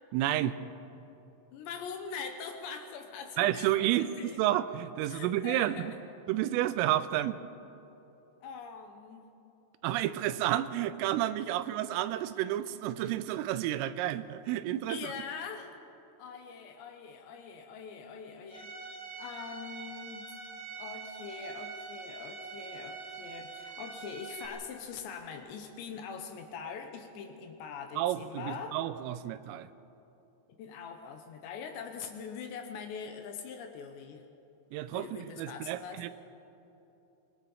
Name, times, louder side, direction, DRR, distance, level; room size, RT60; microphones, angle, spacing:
voice 1, 0.1-0.6 3.4-5.9 6.3-7.4 9.8-15.1 28.0-29.7 34.7-36.1, right 13 dB, 90° right, 12 dB, 3.3 m, -30 dB
voice 2, 1.5-4.4 5.0-6.0 8.4-9.3 14.9-15.7 16.2-18.9 19.2-20.3 20.8-28.8 30.6-34.2 34.8-36.0, left 6 dB, 75° left, 5 dB, 3.0 m, -43 dB
Bowed string instrument, 18.5-24.5, right 5 dB, 50° right, 3.9 m, -44 dB
25.0 x 19.0 x 5.6 m, 2.9 s
omnidirectional pair, 5.7 m